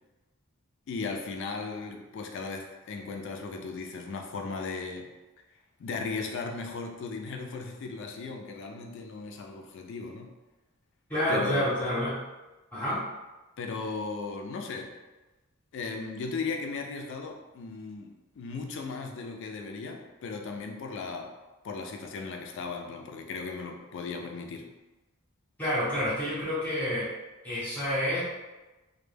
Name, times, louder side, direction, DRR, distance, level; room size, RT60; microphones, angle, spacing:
voice 1, 0.9-5.1 5.8-10.3 11.3-12.0 13.6-14.9 15.7-21.3 21.6-24.7, left 4 dB, 55° left, 3 dB, 0.3 m, -37 dB
voice 2, 11.1-12.2 12.7-13.0 25.6-27.1 27.4-28.2, equal, 10° left, -9 dB, 0.6 m, -28 dB
2.1 x 2.1 x 3.2 m, 1.1 s
head